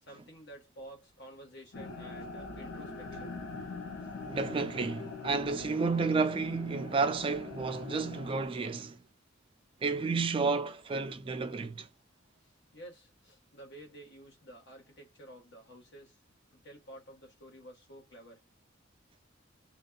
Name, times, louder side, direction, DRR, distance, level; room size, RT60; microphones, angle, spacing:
voice 1, 0.0-3.4 12.4-16.2 16.5-18.5, right 1 dB, 60° left, 1.3 m, -51 dB
sound 1, 1.7-8.5, left 4 dB, 85° left, 0.8 m, -43 dB
voice 2, 4.3-9.0 9.8-11.9, right 4 dB, 25° right, 0.3 m, -31 dB
2.6 x 2.2 x 2.2 m
head